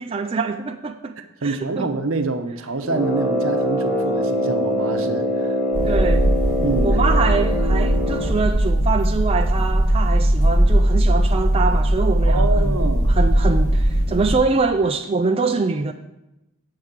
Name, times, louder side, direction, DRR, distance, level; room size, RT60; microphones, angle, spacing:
voice 1, 0.0-1.9 5.8-6.3 6.8-12.8 13.1-15.9, right 4 dB, 25° right, 0.3 m, -24 dB
voice 2, 1.2-5.5 5.8-6.0 6.6-6.9 12.3-13.2, right 3 dB, 75° right, 0.8 m, -26 dB
Brass instrument, 2.8-8.4, equal, 5° right, 1.3 m, -23 dB
sound 1, 5.7-14.4, right 1 dB, 85° left, 2.8 m, -19 dB
8.0 x 4.7 x 7.4 m
head